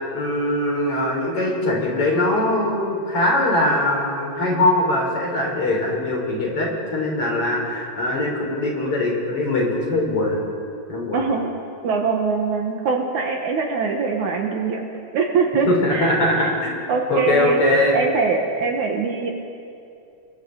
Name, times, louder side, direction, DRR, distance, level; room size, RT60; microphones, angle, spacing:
voice 1, 0.1-10.4 10.9-11.2 15.7-16.7 17.1-18.0, left 1 dB, 40° left, -2 dB, 4.5 m, -21 dB
voice 2, 11.1-11.5 11.8-16.1 16.4-16.5 16.9-17.6 17.9-19.3, right 4 dB, 65° right, 2 dB, 2.6 m, -23 dB
30.0 x 22.0 x 4.0 m, 2.5 s
omnidirectional pair, 4.1 m